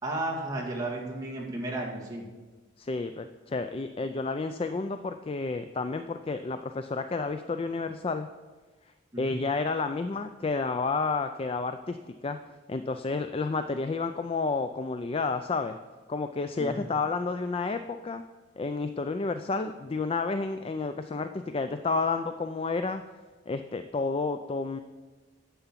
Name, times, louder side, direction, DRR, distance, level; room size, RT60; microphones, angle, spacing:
voice 1, 0.0-2.2 9.1-9.3 16.6-16.8, right 2 dB, 20° right, -3 dB, 2.2 m, -33 dB
voice 2, 2.8-8.3 9.2-12.4 12.7-15.8 16.1-18.2 18.6-23.0 23.5-24.8, left 3 dB, 30° left, 9 dB, 0.4 m, -30 dB
10.5 x 7.0 x 7.4 m, 1.3 s
head